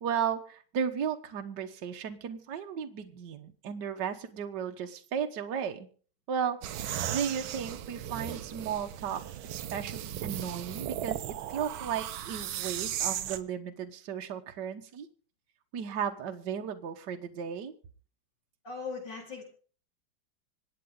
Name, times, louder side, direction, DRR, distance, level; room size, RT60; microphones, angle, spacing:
voice 1, 0.0-5.9 6.3-15.1 15.7-17.7, right 7 dB, 60° right, 5 dB, 1.7 m, -35 dB
sound 1, 6.6-13.4, right 11 dB, 80° right, 1.7 m, -36 dB
voice 2, 18.6-19.4, left 4 dB, 55° left, 1 dB, 5.1 m, -38 dB
26.0 x 9.1 x 3.8 m, 0.42 s
omnidirectional pair, 2.2 m